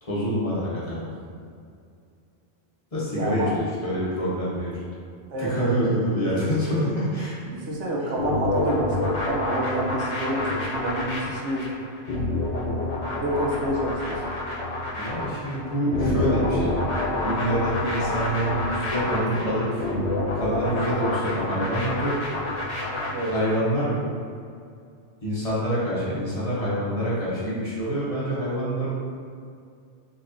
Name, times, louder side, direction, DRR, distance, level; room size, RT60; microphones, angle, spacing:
voice 1, 0.0-1.1 2.9-4.8 5.4-7.5 15.0-16.8 17.1-19.8 20.3-22.1 23.3-24.0 25.2-28.9, equal, 30° left, -9 dB, 1.0 m, -26 dB
voice 2, 3.1-3.5 5.3-6.0 7.5-11.8 13.2-14.2 23.1-23.3, right 1 dB, 80° right, -3 dB, 1.1 m, -28 dB
sound 1, 8.2-23.6, left 2 dB, 70° left, 1.1 m, -28 dB
6.0 x 2.9 x 2.6 m, 2.3 s
omnidirectional pair, 1.2 m